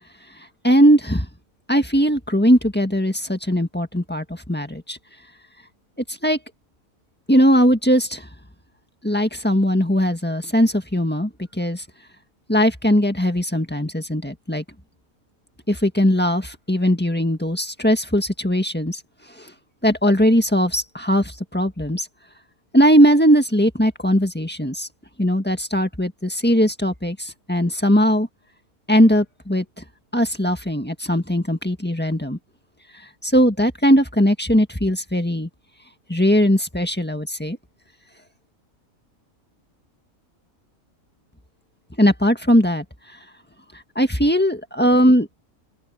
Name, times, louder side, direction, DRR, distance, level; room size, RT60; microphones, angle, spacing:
voice 1, 0.6-1.3 1.7-5.0 6.1-6.4 7.3-8.3 9.0-11.3 11.6-11.8 12.5-14.6 15.7-19.0 19.4-19.5 19.8-22.1 22.7-24.9 25.2-28.3 28.9-29.6 30.1-32.4 33.2-35.5 36.1-37.6 42.0-42.8 43.9-45.3, equal, 10° left, 1.6 m, -19 dB
open air
omnidirectional pair, 1.4 m